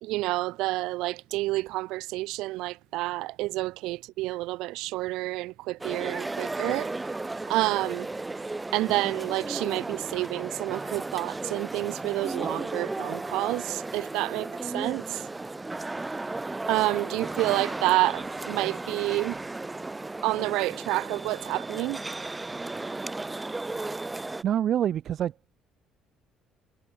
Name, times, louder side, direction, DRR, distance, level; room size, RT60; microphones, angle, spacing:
voice 1, 0.0-6.9 7.5-8.1 8.7-15.3 16.7-19.4 20.2-22.0, right 19 dB, 75° right, 1.2 m, -29 dB
sound 1, 5.8-24.4, right 2 dB, 15° right, 1.7 m, -35 dB
voice 2, 24.4-25.3, right 10 dB, 60° right, 0.5 m, -26 dB
supercardioid pair, 70°, 0 cm